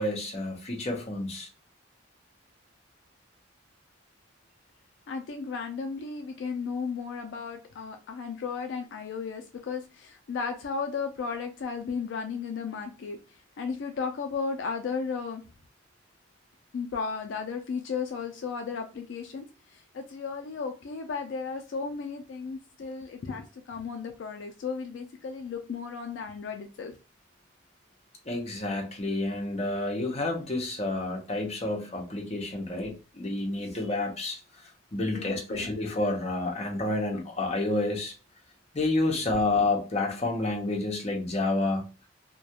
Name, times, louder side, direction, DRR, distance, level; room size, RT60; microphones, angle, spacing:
voice 1, 0.0-1.5 28.3-34.4 34.9-38.1 38.7-41.8, left 2 dB, 35° left, 0 dB, 0.7 m, -29 dB
voice 2, 5.1-15.4 16.7-26.9 35.1-35.7, left 5 dB, 65° left, 5 dB, 0.3 m, -35 dB
2.3 x 2.2 x 2.7 m, 0.32 s
head